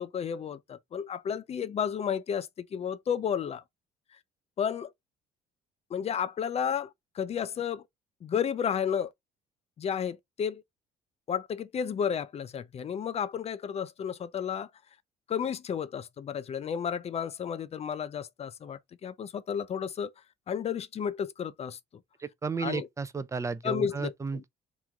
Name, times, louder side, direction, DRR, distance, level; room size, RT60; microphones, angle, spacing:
voice 1, 0.0-3.6 4.6-4.9 5.9-7.8 8.2-9.1 9.8-10.6 11.3-14.7 15.3-20.1 20.5-21.8 22.6-22.9 23.6-24.4, left 8 dB, 40° left, 0.5 m, -32 dB
voice 2, 22.2-24.5, right 5 dB, 20° right, 0.5 m, -33 dB
3.4 x 3.1 x 3.7 m
cardioid pair, 110°, 17 cm